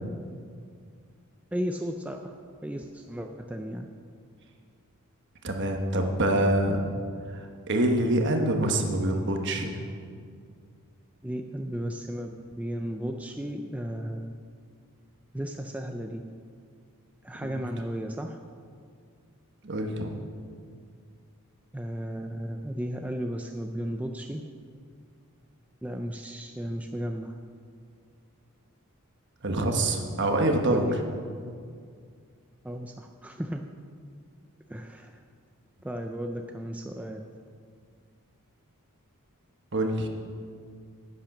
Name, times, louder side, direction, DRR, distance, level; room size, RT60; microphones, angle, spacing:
voice 1, 1.5-2.3 2.6-3.9 11.2-14.3 15.3-16.2 17.2-18.4 21.7-24.4 25.8-27.4 30.7-31.0 32.6-33.6 34.7-35.2 35.8-37.2, equal, 5° right, 3 dB, 0.4 m, -34 dB
voice 2, 5.4-6.9 7.3-9.8 17.5-17.6 19.6-20.1 29.4-30.8 39.7-40.1, right 1 dB, 55° right, 4 dB, 1.2 m, -25 dB
10.0 x 8.7 x 5.9 m, 2.1 s
head